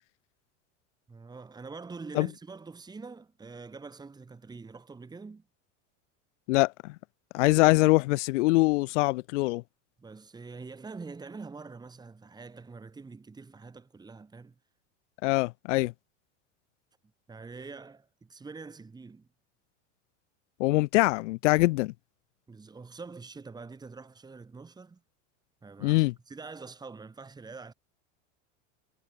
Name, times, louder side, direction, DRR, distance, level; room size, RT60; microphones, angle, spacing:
voice 1, 1.1-5.4 10.0-14.5 17.3-19.3 22.5-25.0 25.6-27.7, right 4 dB, 10° right, 4.0 m, -45 dB
voice 2, 6.5-6.9 7.3-9.6 15.2-15.9 20.6-21.9 25.8-26.1, left 22 dB, 80° left, 0.6 m, -23 dB
supercardioid pair, 150°, 36 cm